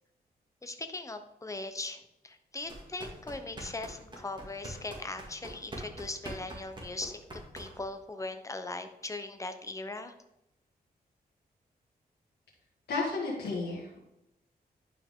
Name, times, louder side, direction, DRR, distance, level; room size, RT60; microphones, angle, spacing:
voice 1, 0.6-7.2 7.5-10.1, left 2 dB, 20° left, 8 dB, 0.8 m, -39 dB
sound 1, 2.6-8.0, right 1 dB, 30° right, 2.1 m, -44 dB
voice 2, 12.9-14.0, left 3 dB, 85° left, -5 dB, 1.9 m, -32 dB
10.5 x 4.7 x 3.7 m, 0.86 s
cardioid pair, 90°, 17 cm